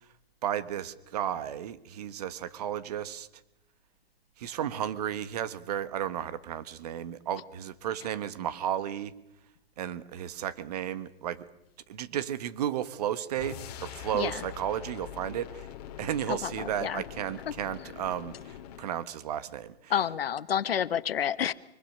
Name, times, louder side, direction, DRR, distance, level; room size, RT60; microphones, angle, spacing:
voice 1, 0.4-3.3 4.4-9.1 9.8-11.4 11.9-15.7 16.0-19.9, right 10 dB, 40° right, 14 dB, 1.4 m, -33 dB
sound 1, 13.4-19.0, left 10 dB, 40° left, 2.4 m, -44 dB
voice 2, 16.3-17.0 19.9-21.5, left 9 dB, 65° left, 15 dB, 1.3 m, -29 dB
24.5 x 24.0 x 6.6 m, 0.87 s
hypercardioid pair, 160°, 32 cm